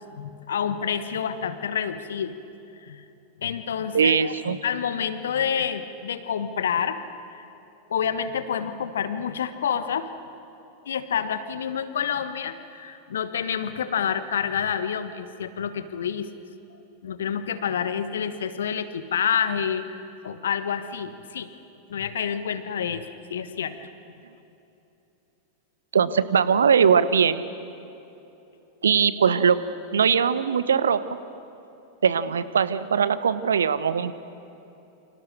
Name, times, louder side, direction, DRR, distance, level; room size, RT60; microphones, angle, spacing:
voice 1, 0.0-2.4 2.8-3.0 3.4-7.0 7.3-7.5 7.9-10.1 10.8-16.3 16.7-21.5 21.9-23.0 23.3-23.8, left 7 dB, 65° left, 11 dB, 1.4 m, -28 dB
voice 2, 3.9-4.6 25.9-27.4 28.8-29.6 29.9-31.2 32.0-34.1, right 7 dB, 70° right, 15 dB, 1.0 m, -21 dB
29.0 x 26.5 x 6.6 m, 3.0 s
figure-of-eight pair, 90°, 0 cm